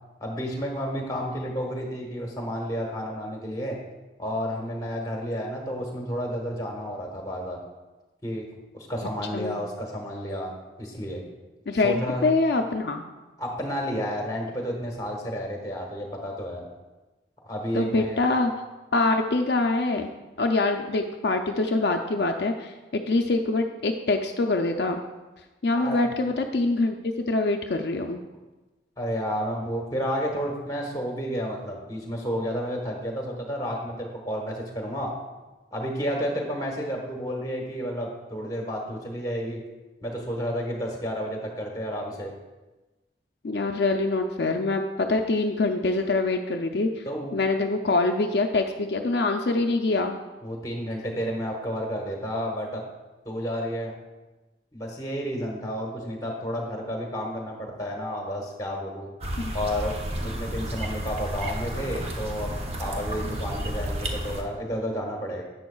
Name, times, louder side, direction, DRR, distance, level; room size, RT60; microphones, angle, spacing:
voice 1, 0.2-3.8 4.2-7.6 8.2-8.4 8.7-10.5 10.8-11.2 11.7-12.3 13.4-16.7 17.4-18.2 25.8-26.1 29.0-35.1 35.7-39.6 40.0-42.3 47.0-47.3 50.4-52.8 53.2-53.9 54.7-59.1 59.5-65.4, equal, 20° left, 0 dB, 1.3 m, -31 dB
voice 2, 11.7-13.0 17.7-18.5 18.9-20.1 20.4-25.0 25.6-28.2 43.4-47.1 47.3-50.2 59.4-59.5, left 3 dB, 65° left, 4 dB, 0.5 m, -24 dB
sound 1, 59.2-64.4, right 1 dB, 35° right, 0.8 m, -31 dB
10.5 x 7.8 x 2.3 m, 1.1 s
head